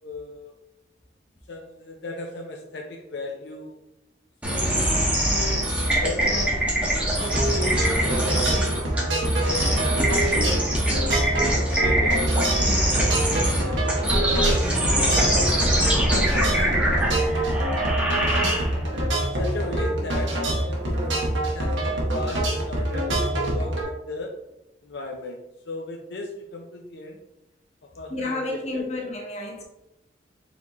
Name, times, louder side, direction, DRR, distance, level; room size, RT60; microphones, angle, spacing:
voice 1, 0.0-0.5 1.5-3.8 4.4-4.8 5.3-8.7 9.0-9.7 10.4-11.0 11.4-15.7 16.6-17.5 19.2-24.3 24.8-27.2 28.0-28.9, left 2 dB, 65° left, 1 dB, 0.5 m, -36 dB
sound 1, 4.4-19.0, right 1 dB, 5° right, 0.9 m, -23 dB
sound 2, 7.2-23.8, right 1 dB, 85° right, 1.3 m, -25 dB
voice 2, 23.4-23.7 28.1-29.6, left 2 dB, 35° left, 0 dB, 0.9 m, -32 dB
4.1 x 4.1 x 3.0 m, 0.91 s
head